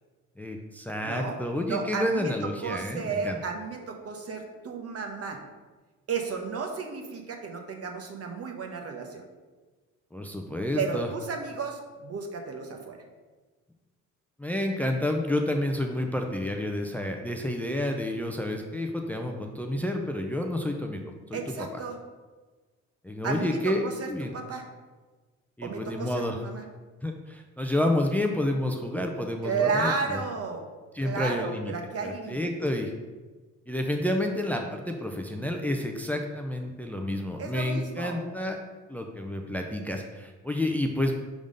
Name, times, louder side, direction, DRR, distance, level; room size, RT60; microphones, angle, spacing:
voice 1, 0.4-3.4 10.1-11.1 14.4-21.0 21.3-21.8 23.0-24.3 25.6-26.4 27.0-30.2 30.9-31.7 32.0-32.9 33.7-38.6 38.9-41.1, left 1 dB, 5° left, 3 dB, 0.5 m, -29 dB
voice 2, 1.0-1.4 1.6-5.4 6.1-9.2 10.8-13.0 21.3-22.0 23.2-24.6 25.6-26.6 29.4-30.7 31.0-32.5 37.4-38.2, right 5 dB, 50° right, 3 dB, 1.0 m, -33 dB
5.2 x 3.6 x 5.2 m, 1.3 s
cardioid pair, 90°, 30 cm